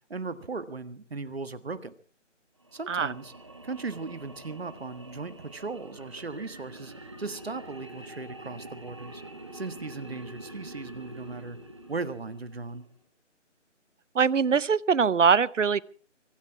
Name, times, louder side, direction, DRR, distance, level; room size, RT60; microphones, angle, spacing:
voice 1, 0.1-1.9 2.7-3.3 3.6-6.9 7.2-9.2 9.5-11.6 11.9-12.8, right 4 dB, 55° right, 12 dB, 1.6 m, -37 dB
sound 1, 2.6-12.9, right 1 dB, 25° right, 1.3 m, -46 dB
voice 2, 14.1-15.8, right 6 dB, 75° right, 22 dB, 0.8 m, -22 dB
24.5 x 11.5 x 4.7 m, 0.43 s
figure-of-eight pair, 180°, 38 cm